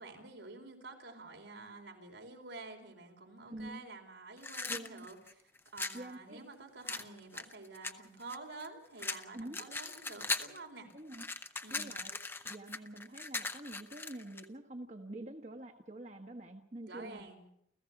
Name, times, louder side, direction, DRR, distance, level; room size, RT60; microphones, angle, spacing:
voice 1, 0.0-5.2 5.7-10.9 11.6-12.0 16.8-17.5, right 3 dB, 85° right, 2 dB, 4.3 m, -49 dB
voice 2, 3.5-3.8 4.7-5.1 5.9-6.4 9.3-9.6 10.9-11.3 11.7-12.2 12.4-17.3, right 1 dB, 40° right, 4 dB, 1.2 m, -46 dB
sound 1, 4.4-6.0 6.9-8.7 9.0-10.6 10.9-14.5, left 3 dB, 10° left, 0.7 m, -39 dB
29.5 x 15.0 x 5.9 m, 0.75 s
head